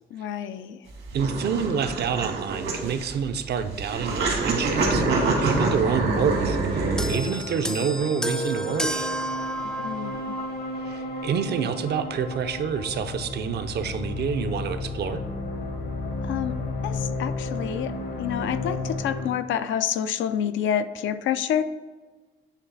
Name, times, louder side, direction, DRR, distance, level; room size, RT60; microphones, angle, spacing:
voice 1, 0.1-0.8 9.8-10.4 16.2-16.6 16.8-17.9 18.2-21.6, left 9 dB, 75° left, 11 dB, 0.4 m, -28 dB
sound 1, 0.9-7.1, right 3 dB, 80° right, 1.7 m, -26 dB
voice 2, 1.1-9.1 10.8-15.2, right 7 dB, 55° right, 8 dB, 0.5 m, -28 dB
sound 2, 4.7-19.3, left 2 dB, 55° left, 0.8 m, -33 dB
sound 3, 7.0-10.6 11.5-11.6, right 1 dB, 5° left, 0.3 m, -31 dB
8.4 x 3.1 x 4.0 m, 1.3 s
cardioid pair, 90°, 20 cm